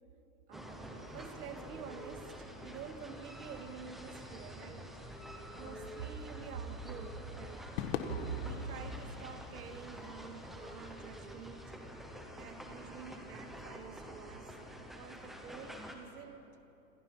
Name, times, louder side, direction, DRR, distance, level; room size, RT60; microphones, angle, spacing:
sound 1, 0.5-15.9, equal, ahead, 0.4 m, -48 dB
voice 1, 0.5-4.9 5.6-7.8 8.1-11.7 12.4-16.5, right 6 dB, 80° right, 2.4 m, -47 dB
Crowd / Fireworks, 7.8-12.3, left 8 dB, 40° left, 1.7 m, -44 dB
27.5 x 27.0 x 5.8 m
supercardioid pair, 165°, 45 cm